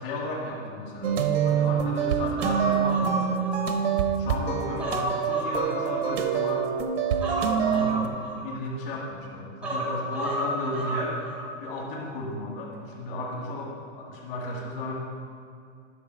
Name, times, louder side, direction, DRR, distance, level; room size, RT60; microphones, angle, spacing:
voice 1, 0.0-3.4 4.2-6.7 7.6-8.1 8.4-11.2 11.6-15.0, left 2 dB, 50° left, -3 dB, 2.0 m, -34 dB
sound 1, 1.0-8.1, right 8 dB, 80° right, 1.0 m, -26 dB
Human voice, 2.4-4.2 4.5-6.6 7.2-9.0 9.6-11.5 11.8-12.0, equal, 5° right, 0.6 m, -32 dB
11.5 x 6.5 x 4.5 m, 2.3 s
supercardioid pair, 175°, 36 cm